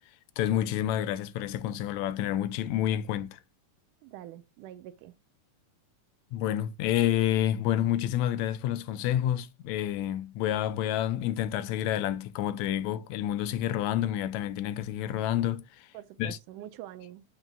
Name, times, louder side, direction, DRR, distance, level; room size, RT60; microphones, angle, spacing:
voice 1, 0.4-3.4 6.3-15.9 16.2-16.4, left 12 dB, 75° left, 1.7 m, -29 dB
voice 2, 4.0-5.2 15.9-17.2, right 12 dB, 75° right, 2.2 m, -45 dB
8.9 x 8.1 x 2.3 m
omnidirectional pair, 3.9 m